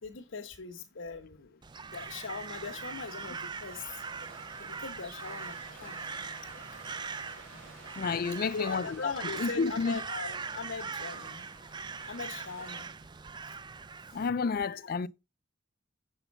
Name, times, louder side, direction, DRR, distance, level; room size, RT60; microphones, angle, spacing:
voice 1, 0.0-1.6 1.9-4.0 4.6-6.0 7.5-7.7 8.4-11.4 12.1-12.9 14.8-14.9, left 4 dB, 85° left, 1.1 m, -40 dB
Crow, 1.6-14.3, right 5 dB, 25° right, 0.4 m, -41 dB
sound 1, 1.9-12.9, right 3 dB, 80° right, 4.1 m, -52 dB
voice 2, 8.0-9.1 9.4-10.0 14.1-15.1, left 5 dB, 50° left, 0.4 m, -30 dB
8.0 x 5.8 x 5.3 m
head